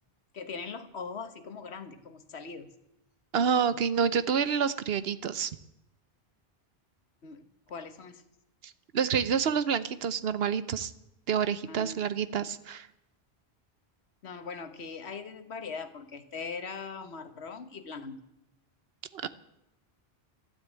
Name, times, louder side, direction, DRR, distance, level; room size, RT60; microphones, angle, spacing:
voice 1, 0.3-2.7 7.2-8.2 11.7-12.0 14.2-18.2, left 5 dB, 90° left, 9 dB, 1.5 m, -41 dB
voice 2, 3.3-5.5 8.6-10.9 11.3-12.9 19.1-19.3, right 7 dB, 70° right, 14 dB, 1.0 m, -28 dB
13.0 x 12.0 x 8.2 m, 0.85 s
omnidirectional pair, 1.1 m